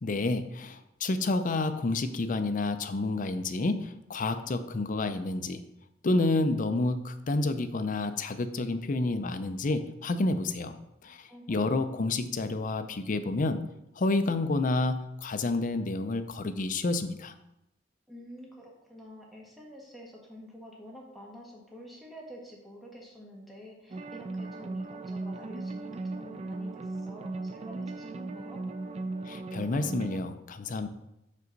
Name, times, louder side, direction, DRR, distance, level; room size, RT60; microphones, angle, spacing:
voice 1, 0.0-5.6 6.0-10.8 11.0-13.6 14.0-17.3 29.3-30.9, left 2 dB, 45° left, 9 dB, 0.5 m, -29 dB
voice 2, 11.3-11.8 18.1-28.6, equal, ahead, -3 dB, 1.3 m, -48 dB
sound 1, 23.9-30.2, right 3 dB, 35° right, 0.3 m, -37 dB
6.2 x 5.4 x 3.9 m, 0.85 s
head